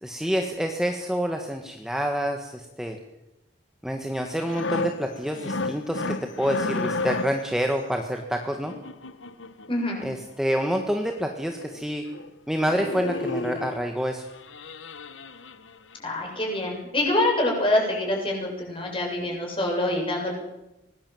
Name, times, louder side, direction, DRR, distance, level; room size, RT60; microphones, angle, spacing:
voice 1, 0.0-3.0 3.8-8.7 10.0-12.1 12.5-14.2, equal, 5° right, 3 dB, 1.6 m, -27 dB
sound 1, 4.3-7.5 8.5-9.7 10.8-10.9 11.2-11.3 11.6-11.8 12.1-12.3 12.5-13.8 14.3-15.9 16.3-16.5, left 3 dB, 85° left, 1.3 m, -32 dB
voice 2, 9.7-10.1 16.0-20.3, left 1 dB, 30° left, 1 dB, 7.6 m, -25 dB
24.5 x 20.0 x 7.8 m, 0.91 s
head